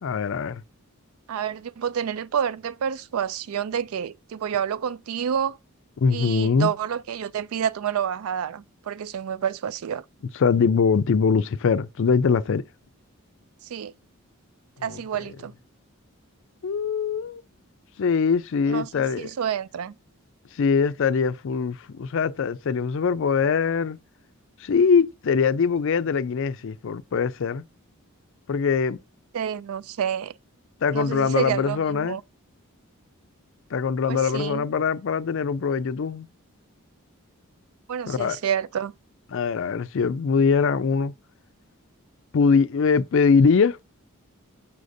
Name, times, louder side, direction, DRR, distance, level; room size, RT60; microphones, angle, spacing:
voice 1, 0.0-0.6 6.0-6.7 10.3-12.6 14.8-15.0 16.6-17.4 18.0-19.3 20.5-24.0 24.6-27.6 28.5-29.0 30.8-32.2 33.7-36.3 38.1-38.4 39.3-41.1 42.3-43.8, left 5 dB, 60° left, 0.4 m, -22 dB
voice 2, 1.3-5.6 6.1-10.0 13.6-13.9 14.8-15.5 18.7-20.0 29.3-30.3 30.9-32.2 34.1-34.7 37.9-38.9, right 8 dB, 75° right, 0.4 m, -29 dB
6.4 x 5.6 x 2.6 m
head